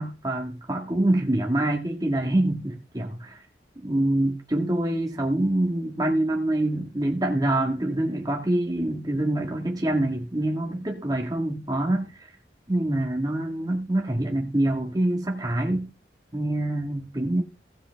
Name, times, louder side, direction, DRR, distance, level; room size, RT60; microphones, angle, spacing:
voice 1, 0.0-3.4 3.8-12.3 12.7-15.9 16.3-17.4, right 1 dB, 20° right, 1.8 m, -25 dB
16.0 x 7.2 x 3.4 m
head